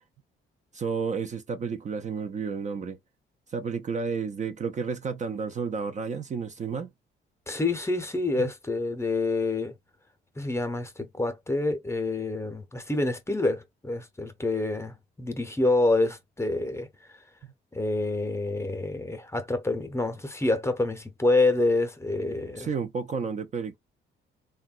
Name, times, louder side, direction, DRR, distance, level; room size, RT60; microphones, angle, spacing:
voice 1, 0.7-3.0 3.5-6.9 8.4-8.5 17.4-17.5 22.6-23.8, right 5 dB, 35° right, 0.4 m, -31 dB
voice 2, 7.5-9.7 10.4-16.9 17.7-22.7, left 2 dB, 15° left, 0.7 m, -27 dB
3.3 x 2.2 x 2.4 m
cardioid pair, 90°, 20 cm